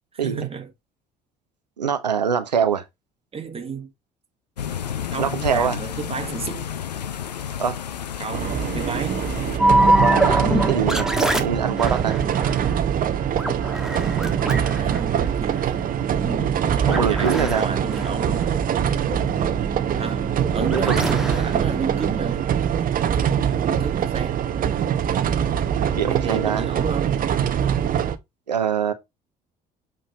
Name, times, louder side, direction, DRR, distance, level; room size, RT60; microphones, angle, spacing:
voice 1, 0.1-0.7 3.3-3.9 5.1-6.7 8.2-9.3 14.4-15.8 16.8-18.5 19.9-22.6 23.5-24.4 25.9-27.1, right 5 dB, 30° right, 1.7 m, -31 dB
voice 2, 1.8-2.8 5.2-5.8 7.6-7.8 9.9-11.1 11.4-12.2 16.9-17.6 20.6-21.0 26.0-26.7 28.5-28.9, right 7 dB, 85° right, 0.8 m, -23 dB
sound 1, 4.6-9.6, left 9 dB, 85° left, 0.6 m, -31 dB
sound 2, 8.3-28.2, right 9 dB, 45° right, 0.9 m, -23 dB
sound 3, 9.6-22.6, right 1 dB, ahead, 1.5 m, -26 dB
7.5 x 3.9 x 4.1 m
figure-of-eight pair, 55°, 21 cm